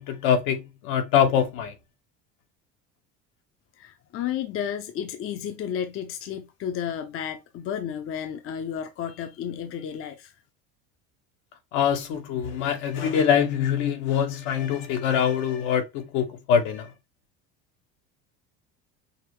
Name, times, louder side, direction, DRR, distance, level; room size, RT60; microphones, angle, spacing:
voice 1, 0.0-1.7 11.7-16.9, left 8 dB, 75° left, 1.3 m, -24 dB
voice 2, 3.8-10.3, left 9 dB, 40° left, 0.7 m, -32 dB
5.8 x 2.0 x 3.1 m
cardioid pair, 120°, 33 cm